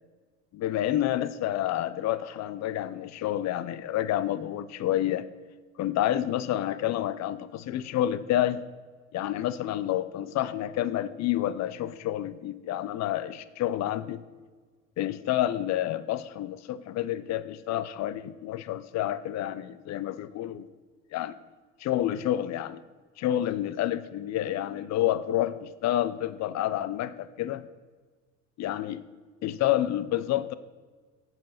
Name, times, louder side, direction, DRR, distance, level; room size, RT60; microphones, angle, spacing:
voice 1, 0.5-5.3 5.8-8.6 9.1-14.2 15.0-20.7 21.1-21.3 21.8-22.8 23.2-27.7 28.6-29.0 29.4-30.5, left 12 dB, 45° left, 16 dB, 0.7 m, -29 dB
15.0 x 5.4 x 5.7 m, 1.5 s
supercardioid pair, 90°, 37 cm